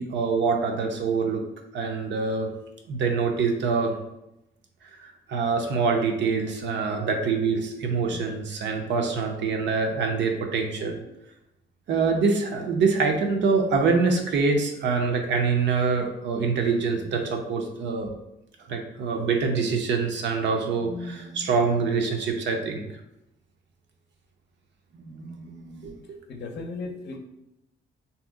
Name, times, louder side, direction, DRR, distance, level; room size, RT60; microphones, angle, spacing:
voice 1, 0.0-1.4 1.7-2.5 2.9-3.9 5.3-11.0 11.9-18.1 18.7-22.8 24.9-25.9, right 4 dB, 65° right, 2 dB, 0.6 m, -25 dB
voice 2, 26.3-27.2, left 3 dB, 60° left, 3 dB, 0.6 m, -35 dB
2.7 x 2.0 x 3.5 m, 0.87 s
cardioid pair, 90°, 20 cm